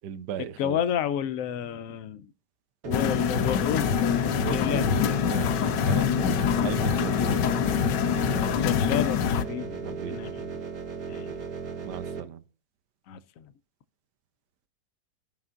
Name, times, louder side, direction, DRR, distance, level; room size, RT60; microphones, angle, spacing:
voice 1, 0.0-0.8 4.3-7.4 9.8-10.2 11.1-11.4 11.8-12.4, right 9 dB, 80° right, 1.3 m, -37 dB
voice 2, 0.6-2.3 2.8-5.2 8.3-10.5 11.1-11.3 13.1-13.4, left 9 dB, 65° left, 0.9 m, -31 dB
sound 1, 2.8-12.2, right 6 dB, 55° right, 1.5 m, -36 dB
sound 2, 2.9-9.4, left 8 dB, 90° left, 1.3 m, -25 dB
16.0 x 5.7 x 2.5 m
omnidirectional pair, 1.8 m